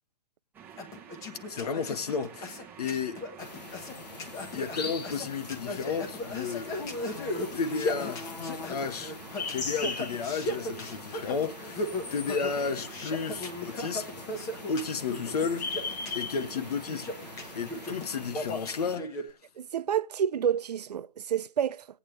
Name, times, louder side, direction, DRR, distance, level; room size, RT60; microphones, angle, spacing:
sound 1, 0.5-18.3, right 8 dB, 10° right, 1.1 m, -49 dB
sound 2, 0.8-19.2, left 1 dB, 15° left, 1.2 m, -37 dB
voice 1, 1.5-3.2 4.5-6.8 7.5-8.2 8.7-9.1 9.5-14.1 14.4-19.3, left 5 dB, 70° left, 1.4 m, -33 dB
sound 3, 3.4-19.0, left 4 dB, 90° left, 2.2 m, -41 dB
voice 2, 19.6-21.9, right 9 dB, 75° right, 0.7 m, -29 dB
20.0 x 8.7 x 3.3 m
hypercardioid pair, 160°, 21 cm